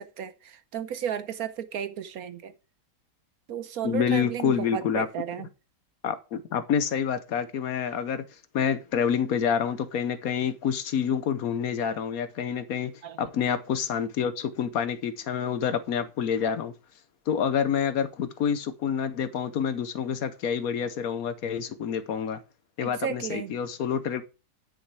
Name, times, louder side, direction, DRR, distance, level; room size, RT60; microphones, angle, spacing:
voice 1, 0.0-2.5 3.5-5.5 13.0-13.2 22.8-23.6, right 8 dB, 65° right, 1.2 m, -34 dB
voice 2, 3.8-5.1 6.0-8.2 8.5-12.9 13.2-16.7 17.3-22.4 22.8-24.2, left 7 dB, 65° left, 1.1 m, -27 dB
9.9 x 6.4 x 4.7 m
omnidirectional pair, 1.8 m